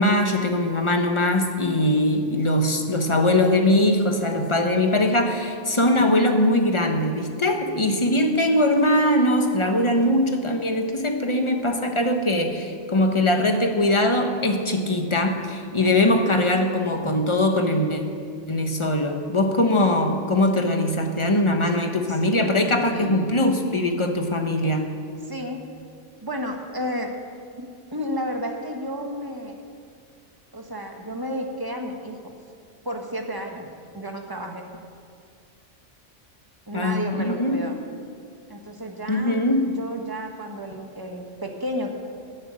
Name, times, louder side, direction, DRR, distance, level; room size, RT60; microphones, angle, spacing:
voice 1, 0.0-18.0 18.5-24.9 36.7-37.6 39.1-39.7, left 1 dB, 25° left, 5 dB, 1.2 m, -21 dB
voice 2, 15.8-16.2 22.9-23.4 25.3-25.6 26.2-27.1 27.6-29.6 30.5-32.3 32.8-33.7 33.9-34.7 36.7-37.8 38.5-39.4 39.8-41.9, equal, 20° right, 2 dB, 1.4 m, -32 dB
13.5 x 8.0 x 8.9 m, 2.2 s
omnidirectional pair, 1.2 m